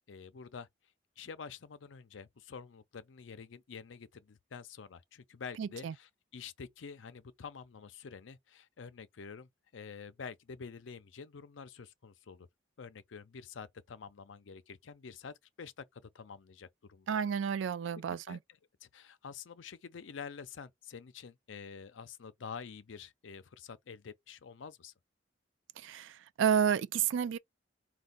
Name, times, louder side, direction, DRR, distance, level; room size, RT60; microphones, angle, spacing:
voice 1, 0.1-0.7 1.2-12.5 12.8-17.1 18.3-18.4 18.8-24.9, left 6 dB, 85° left, 0.5 m, -48 dB
voice 2, 5.6-5.9 17.1-18.4 25.8-27.4, right 8 dB, 80° right, 0.3 m, -31 dB
4.4 x 2.3 x 3.8 m
head